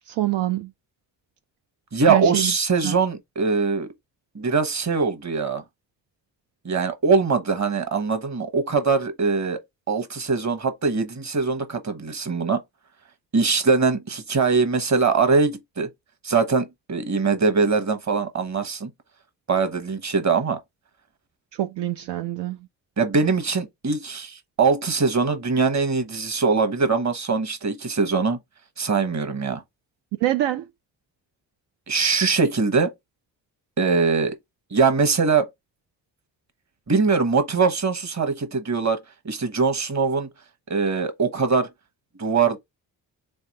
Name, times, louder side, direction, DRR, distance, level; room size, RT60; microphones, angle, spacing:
voice 1, 0.1-0.7 2.1-2.5 2.8-2.9 21.5-22.6 30.2-30.6, right 14 dB, 80° right, 0.5 m, -25 dB
voice 2, 1.9-3.9 4.3-5.6 6.6-9.6 9.9-12.6 13.3-15.9 16.2-18.9 19.5-20.6 23.0-28.4 28.8-29.6 31.9-32.9 33.8-34.3 34.7-35.5 36.9-39.0 39.2-40.3 40.7-41.7 42.2-42.6, right 4 dB, 40° right, 1.2 m, -22 dB
3.5 x 2.8 x 4.2 m
cardioid pair, 65°, 42 cm